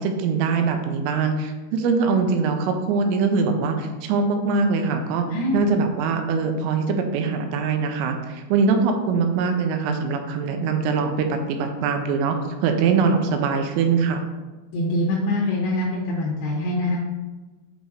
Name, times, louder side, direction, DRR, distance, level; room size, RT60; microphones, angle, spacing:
voice 1, 0.0-5.3 5.5-14.2, right 5 dB, 85° right, 5 dB, 2.9 m, -22 dB
voice 2, 5.3-5.6 14.7-17.0, left 1 dB, 75° left, -5 dB, 2.8 m, -24 dB
8.3 x 5.0 x 2.6 m, 1.2 s
omnidirectional pair, 5.2 m